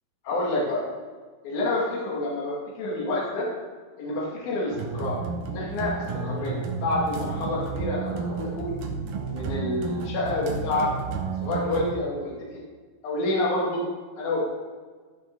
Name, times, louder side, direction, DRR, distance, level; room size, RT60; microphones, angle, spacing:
voice 1, 0.2-0.8 1.4-3.5 4.0-8.7 9.3-10.9 11.4-12.5 13.0-13.8 14.2-14.5, left 2 dB, 60° left, -4 dB, 3.4 m, -28 dB
sound 1, 4.7-11.9, right 5 dB, 70° right, 2.5 m, -32 dB
15.0 x 5.9 x 3.8 m, 1.5 s
omnidirectional pair, 4.2 m